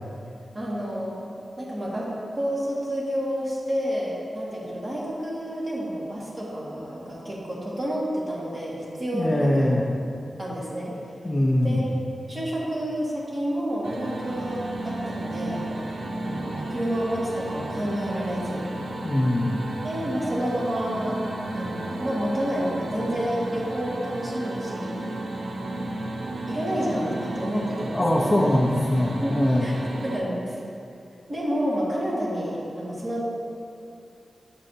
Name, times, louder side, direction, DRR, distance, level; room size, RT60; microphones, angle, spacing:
voice 1, 0.5-1.2 1.6-9.6 10.4-10.9 11.6-12.0 12.3-15.8 16.1-18.7 19.8-21.2 21.5-24.9 26.3-28.3 29.2-30.6 31.3-33.3, equal, 35° right, -6 dB, 1.6 m, -29 dB
voice 2, 9.1-9.8 11.2-11.8 19.0-19.6 27.9-29.7, left 1 dB, 15° left, -3 dB, 0.6 m, -22 dB
sound 1, 13.8-30.2, right 2 dB, 85° right, 0.6 m, -33 dB
8.8 x 6.3 x 2.7 m, 2.5 s
wide cardioid pair, 140°, 0 cm